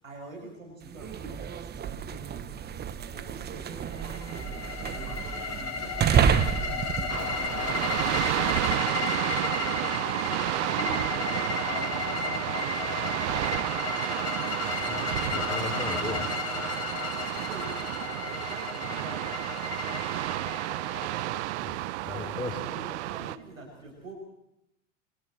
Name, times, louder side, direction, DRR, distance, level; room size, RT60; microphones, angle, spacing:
voice 1, 0.0-12.5 17.4-19.5 22.0-24.1, right 1 dB, 90° right, 0 dB, 7.3 m, -46 dB
sound 1, 0.9-8.7, right 8 dB, 25° right, 1.0 m, -30 dB
sound 2, 3.9-21.7, left 5 dB, 40° left, 3.3 m, -34 dB
sound 3, 7.1-23.4, right 18 dB, 60° right, 0.8 m, -31 dB
voice 2, 14.9-16.3 21.5-21.7 22.0-22.6, left 4 dB, 10° left, 3 dB, 3.1 m, -36 dB
28.0 x 28.0 x 3.3 m, 0.83 s
hypercardioid pair, 85°, 39 cm